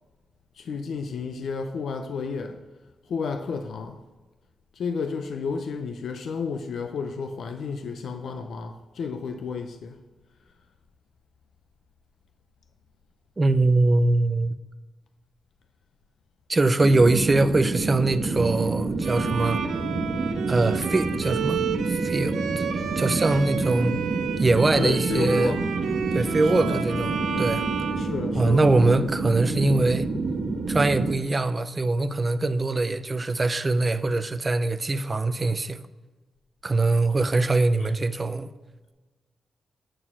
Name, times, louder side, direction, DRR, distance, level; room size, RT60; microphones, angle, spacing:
voice 1, 0.6-2.6 3.1-4.0 4.8-10.0 24.8-25.7 26.4-26.8 28.0-29.0, left 5 dB, 55° left, 0.5 m, -31 dB
voice 2, 13.4-14.6 16.5-19.6 20.5-21.6 21.9-22.6 23.0-23.9 24.4-25.5 26.1-27.7 28.3-30.1 30.7-35.8 36.6-38.5, right 2 dB, 20° right, 0.4 m, -22 dB
sound 1, 16.8-31.1, right 3 dB, 60° right, 1.2 m, -28 dB
Bowed string instrument, 19.0-28.8, right 6 dB, 80° right, 0.7 m, -32 dB
8.9 x 4.3 x 5.7 m
wide cardioid pair, 180°, 0 cm